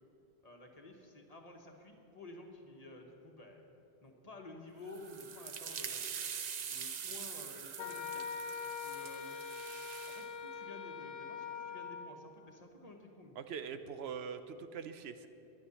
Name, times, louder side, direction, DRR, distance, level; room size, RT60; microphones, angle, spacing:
voice 1, 0.4-3.6 4.0-6.1 6.7-8.4 8.6-9.4 10.1-13.3, left 2 dB, 40° left, 2 dB, 1.3 m, -52 dB
sound 1, 4.9-10.3, right 7 dB, 50° right, 0.6 m, -44 dB
Wind instrument woodwind instrument, 7.8-12.2, left 6 dB, 75° left, 1.0 m, -43 dB
voice 2, 13.4-15.3, right 6 dB, 75° right, 10 dB, 0.9 m, -43 dB
11.0 x 10.5 x 7.0 m, 2.9 s
omnidirectional pair, 1.1 m